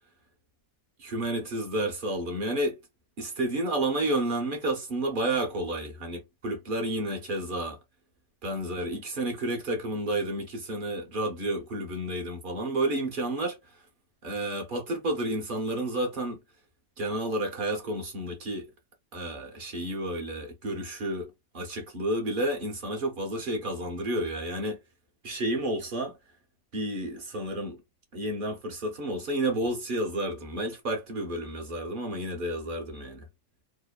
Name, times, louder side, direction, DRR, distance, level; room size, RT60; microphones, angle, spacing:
voice 1, 1.0-2.8 3.2-7.8 8.4-13.6 14.2-16.4 17.0-18.7 19.1-24.8 25.2-26.1 26.7-27.8 28.1-33.2, right 1 dB, 50° right, 0.7 m, -31 dB
2.8 x 2.1 x 2.2 m
omnidirectional pair, 1.5 m